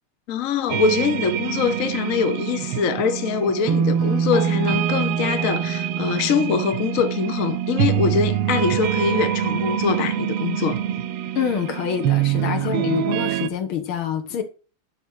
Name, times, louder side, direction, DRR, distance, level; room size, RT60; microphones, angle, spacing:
voice 1, 0.3-10.8 12.6-12.7, left 6 dB, 50° left, 1.0 m, -23 dB
sound 1, 0.7-13.5, right 9 dB, 90° right, 1.6 m, -24 dB
voice 2, 11.4-14.4, left 8 dB, 70° left, 2.1 m, -26 dB
12.0 x 4.4 x 6.4 m
omnidirectional pair, 2.4 m